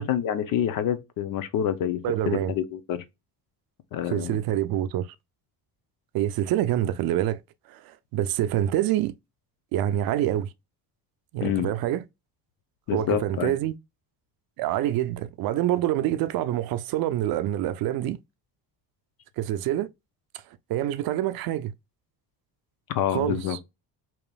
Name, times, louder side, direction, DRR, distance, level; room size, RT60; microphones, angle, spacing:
voice 1, 0.0-3.0 3.9-4.4 11.4-11.7 12.9-13.5 22.9-23.6, left 10 dB, 60° left, 0.7 m, -27 dB
voice 2, 2.0-2.5 4.1-5.1 6.1-7.4 7.7-9.1 9.7-10.5 11.3-12.0 12.9-13.7 14.6-18.2 19.4-19.9 20.7-21.7 23.1-23.6, right 12 dB, 65° right, 0.5 m, -26 dB
5.0 x 3.0 x 2.2 m
cardioid pair, 180°, 39 cm